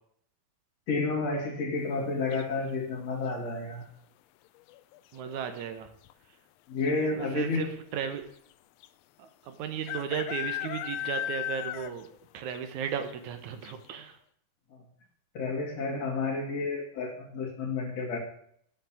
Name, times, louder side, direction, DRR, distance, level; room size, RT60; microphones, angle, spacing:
voice 1, 0.9-3.9 6.7-7.7 14.7-14.8 15.3-18.2, left 3 dB, 60° left, 1 dB, 3.4 m, -31 dB
sound 1, 2.3-2.8 4.6-5.0 5.3-5.4 5.6-6.1 6.9-7.0 7.2-7.3 8.8-8.9 9.9-12.2 12.5-12.6 13.1-13.2 13.6-13.7, left 12 dB, 80° left, 1.5 m, -35 dB
voice 2, 5.1-5.9 7.2-8.3 9.2-12.1 12.3-14.2, right 8 dB, 75° right, 8 dB, 2.4 m, -35 dB
8.6 x 7.9 x 8.9 m, 0.67 s
omnidirectional pair, 3.5 m